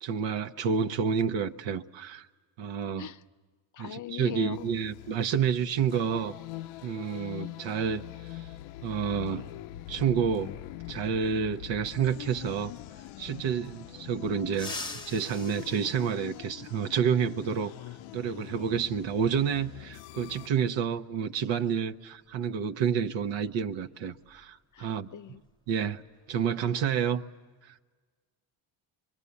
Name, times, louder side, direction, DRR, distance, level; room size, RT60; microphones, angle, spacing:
voice 1, 0.0-2.3 2.6-3.1 3.8-6.4 6.8-8.5 8.8-9.5 9.9-10.5 10.9-12.7 13.2-14.8 15.1-17.7 18.1-25.4 25.7-26.0 26.3-27.2 27.6-27.7, right 7 dB, 70° right, 0.9 m, -29 dB
voice 2, 3.7-4.7 24.7-25.4, left 10 dB, 40° left, 0.7 m, -40 dB
sound 1, 4.5-20.5, left 15 dB, 80° left, 0.7 m, -43 dB
sound 2, 14.5-16.9 18.5-18.6 19.9-20.0 21.6-21.7 22.1-22.3 22.8-25.0 25.2-25.5 25.9-26.4, left 2 dB, 10° left, 0.8 m, -44 dB
25.0 x 23.0 x 8.3 m
cardioid pair, 110°, 47 cm